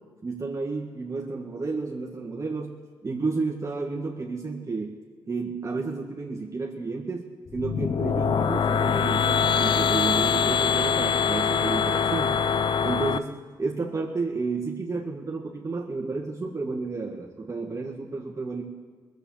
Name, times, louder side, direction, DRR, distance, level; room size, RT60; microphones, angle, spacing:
voice 1, 0.2-2.8 3.0-5.0 5.3-12.4 12.8-18.6, right 3 dB, 35° right, -1 dB, 1.7 m, -31 dB
sound 1, 7.5-13.2, left 6 dB, 60° left, 0.7 m, -23 dB
19.5 x 7.9 x 7.2 m, 1.5 s
supercardioid pair, 50°, 9 cm